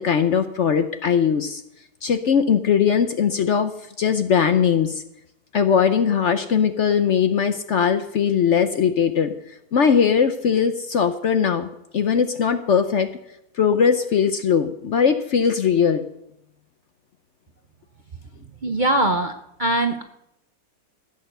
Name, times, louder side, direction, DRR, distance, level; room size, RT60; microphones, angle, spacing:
voice 1, 0.0-1.6 2.0-3.7 4.0-5.0 5.5-9.3 9.7-11.7 11.9-13.1 13.6-16.0, left 7 dB, 60° left, 9 dB, 0.8 m, -20 dB
voice 2, 18.6-19.3 19.6-20.0, right 1 dB, 45° right, 6 dB, 0.7 m, -21 dB
15.0 x 8.4 x 6.7 m, 0.83 s
omnidirectional pair, 1.7 m